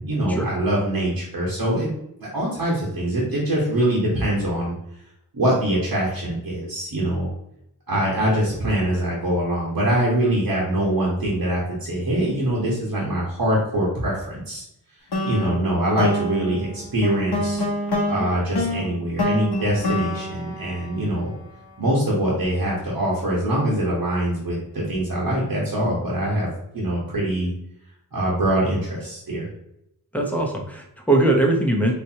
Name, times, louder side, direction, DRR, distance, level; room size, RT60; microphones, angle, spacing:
voice 1, 0.0-1.9 2.2-4.7 5.3-7.3 7.9-14.6 15.2-17.6 18.1-21.3 21.8-26.5 26.7-27.5 28.1-29.5, right 1 dB, 65° right, -6 dB, 1.4 m, -23 dB
sound 1, 15.1-21.5, left 1 dB, 75° left, 1.1 m, -27 dB
voice 2, 30.1-31.9, right 2 dB, 5° left, 1 dB, 1.0 m, -20 dB
4.4 x 3.1 x 2.9 m, 0.79 s
wide cardioid pair, 60°, 39 cm